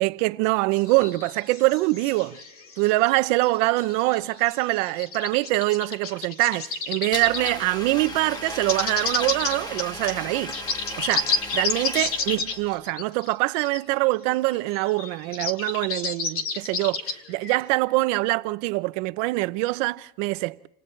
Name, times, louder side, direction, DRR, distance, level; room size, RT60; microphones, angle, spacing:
voice 1, 0.0-2.4 2.8-10.6 11.0-20.7, right 21 dB, 70° right, 0.9 m, -24 dB
sound 1, 0.7-3.2 3.4-7.6 7.9-13.8 14.1-14.2 14.3-17.8, left 4 dB, 35° left, 2.0 m, -31 dB
Domestic sounds home sounds, 7.1-12.8, left 1 dB, 10° left, 1.3 m, -36 dB
29.5 x 27.5 x 3.3 m
cardioid pair, 175°, 40 cm